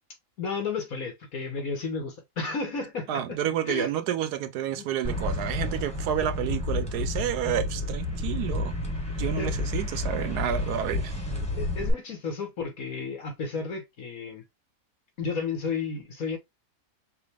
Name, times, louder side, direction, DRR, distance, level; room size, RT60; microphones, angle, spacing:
voice 1, 0.4-3.4 3.7-3.9 4.7-4.9 9.4-9.6 11.6-14.4 15.2-16.4, left 4 dB, 65° left, 1.8 m, -32 dB
voice 2, 3.1-8.8 9.2-11.1, right 10 dB, 85° right, 1.2 m, -30 dB
sound 1, 5.0-11.9, left 2 dB, 5° left, 1.1 m, -30 dB
5.7 x 2.3 x 3.4 m
omnidirectional pair, 1.6 m